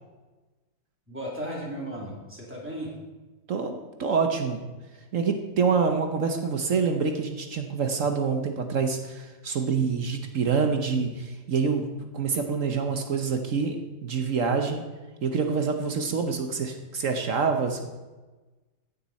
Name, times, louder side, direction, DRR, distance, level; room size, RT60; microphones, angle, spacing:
voice 1, 1.1-2.9, equal, 5° right, -4 dB, 2.9 m, -35 dB
voice 2, 3.5-4.6 5.1-11.9 12.1-13.8 14.0-14.8 15.2-17.8, right 5 dB, 55° right, 5 dB, 1.0 m, -26 dB
15.0 x 6.8 x 4.2 m, 1.2 s
omnidirectional pair, 2.1 m